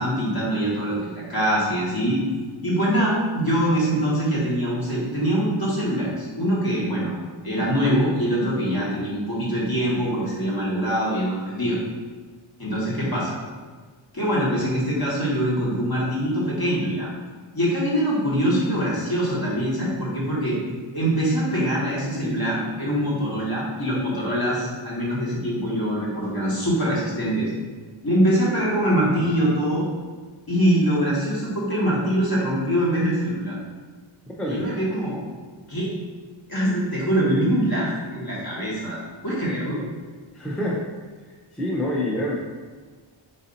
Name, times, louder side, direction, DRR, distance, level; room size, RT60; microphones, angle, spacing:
voice 1, 0.0-2.2 2.6-7.1 7.4-11.8 12.6-13.4 14.1-17.1 17.5-20.6 20.9-27.5 28.0-29.9 30.5-33.6 34.5-35.2 35.7-35.9 36.5-39.8, equal, 45° left, -7 dB, 1.5 m, -23 dB
voice 2, 40.3-40.8 41.5-42.4, left 1 dB, ahead, -4 dB, 0.6 m, -26 dB
4.1 x 2.7 x 4.0 m, 1.5 s
wide cardioid pair, 60°, 50 cm